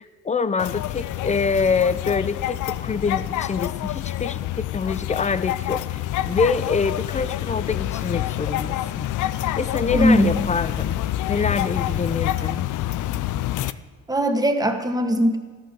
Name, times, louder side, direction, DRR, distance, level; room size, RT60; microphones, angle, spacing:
voice 1, 0.0-9.1 9.6-11.0 11.3-12.7, left 5 dB, 25° left, 14 dB, 0.7 m, -25 dB
sound 1, 0.6-13.7, left 13 dB, 80° left, 0.6 m, -27 dB
voice 2, 9.9-10.4 14.1-15.4, equal, 10° right, 5 dB, 1.7 m, -20 dB
14.0 x 11.0 x 6.9 m, 1.5 s
cardioid pair, 90°, 30 cm